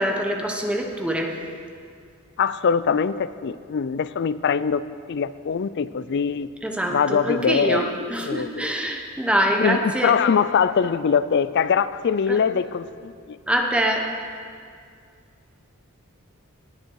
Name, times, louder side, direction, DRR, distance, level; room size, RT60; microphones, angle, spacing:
voice 1, 0.0-1.4 6.6-10.1 12.3-12.4 13.5-14.1, right 1 dB, 5° right, 2 dB, 1.0 m, -24 dB
voice 2, 2.4-6.5 6.9-7.8 8.2-8.7 9.6-13.4, left 6 dB, 50° left, 15 dB, 0.4 m, -23 dB
19.0 x 9.2 x 4.7 m, 2.2 s
head